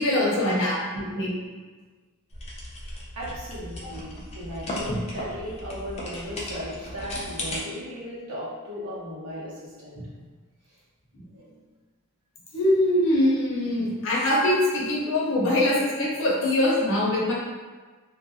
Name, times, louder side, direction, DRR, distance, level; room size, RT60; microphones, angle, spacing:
voice 1, 0.0-1.3 4.9-5.0 10.0-10.1 11.2-11.3 12.5-17.3, left 1 dB, 60° left, -6 dB, 0.7 m, -23 dB
sound 1, 2.3-7.6, left 1 dB, 30° left, 0.4 m, -36 dB
voice 2, 3.1-9.5 9.8-10.0 11.3-11.6, equal, 70° right, -7 dB, 0.8 m, -36 dB
2.4 x 2.1 x 2.6 m, 1.4 s
head